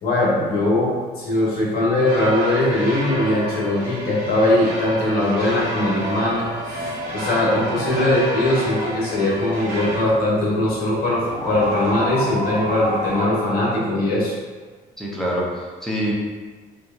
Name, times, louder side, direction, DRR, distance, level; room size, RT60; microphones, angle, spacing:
voice 1, 0.0-6.4 6.8-14.3, left 1 dB, 60° left, -6 dB, 0.9 m, -20 dB
sound 1, 2.0-10.0, right 1 dB, 60° right, 0.9 m, -30 dB
sound 2, 5.4-13.2, equal, 85° right, 1.1 m, -31 dB
voice 2, 15.0-16.1, equal, ahead, -6 dB, 0.5 m, -25 dB
2.7 x 2.0 x 2.4 m, 1.5 s
cardioid pair, 110°, 17 cm